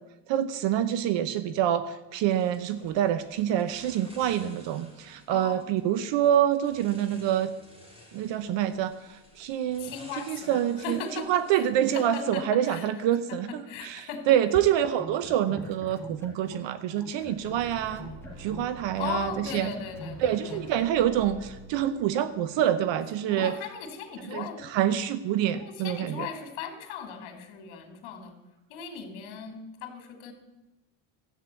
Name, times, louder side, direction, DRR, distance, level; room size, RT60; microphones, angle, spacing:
voice 1, 0.3-7.5 8.1-14.0 14.3-18.1 18.4-19.7 20.2-23.5 24.3-26.3, right 10 dB, 65° right, 13 dB, 0.9 m, -26 dB
sound 1, 2.3-12.4, equal, 10° right, 3.1 m, -53 dB
voice 2, 5.3-5.9 9.8-11.7 11.9-12.9 13.3-14.2 19.0-20.9 23.3-24.7 25.6-28.3 28.7-30.3, left 6 dB, 80° left, 6 dB, 2.9 m, -38 dB
sound 2, 15.0-16.7 17.0-20.7, equal, 5° left, 2.0 m, -44 dB
sound 3, 17.1-23.4, right 3 dB, 35° right, 2.3 m, -48 dB
13.0 x 8.5 x 8.3 m, 1.0 s
cardioid pair, 140°, 48 cm